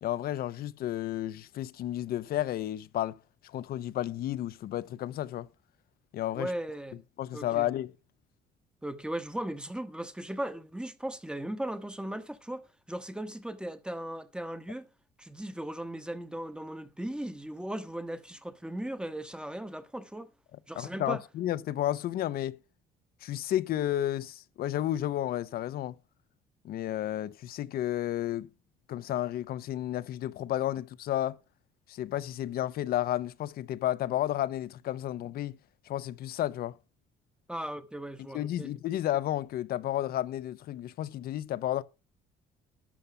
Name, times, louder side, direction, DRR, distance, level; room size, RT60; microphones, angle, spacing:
voice 1, 0.0-3.2 3.4-5.5 6.1-6.5 7.2-7.9 20.8-22.6 23.2-26.0 26.6-28.5 28.9-31.4 31.9-35.6 35.9-36.8 38.3-41.8, left 13 dB, 65° left, 0.7 m, -32 dB
voice 2, 6.3-7.0 7.3-7.7 8.8-14.9 15.2-20.3 20.7-21.2 37.5-38.7, right 1 dB, 5° right, 1.0 m, -37 dB
12.5 x 5.6 x 6.8 m
cardioid pair, 110°, 17 cm